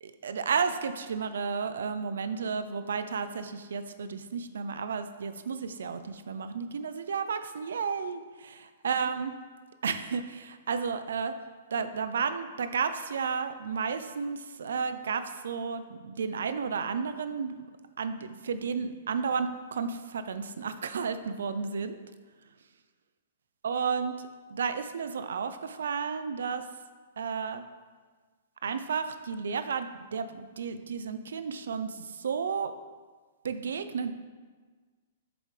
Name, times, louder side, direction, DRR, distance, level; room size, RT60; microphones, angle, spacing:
voice 1, 0.0-9.3 9.8-11.3 11.7-17.5 18.0-22.0 23.6-26.7 27.2-27.6 28.6-32.7 33.4-34.1, right 6 dB, 85° right, 10 dB, 0.5 m, -32 dB
7.8 x 6.6 x 3.3 m, 1.4 s
hypercardioid pair, 170°, 0 cm